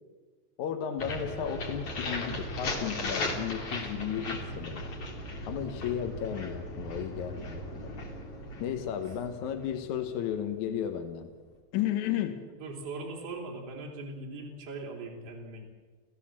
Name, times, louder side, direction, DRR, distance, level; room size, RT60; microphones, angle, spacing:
voice 1, 0.6-4.9 5.5-7.9 8.6-11.3 11.7-12.4, left 9 dB, 65° left, 8 dB, 1.9 m, -34 dB
sound 1, 1.0-10.8, left 1 dB, 40° left, 3.0 m, -37 dB
voice 2, 12.6-15.7, right 3 dB, 35° right, -1 dB, 4.0 m, -40 dB
28.5 x 16.0 x 7.5 m, 1.4 s
omnidirectional pair, 5.0 m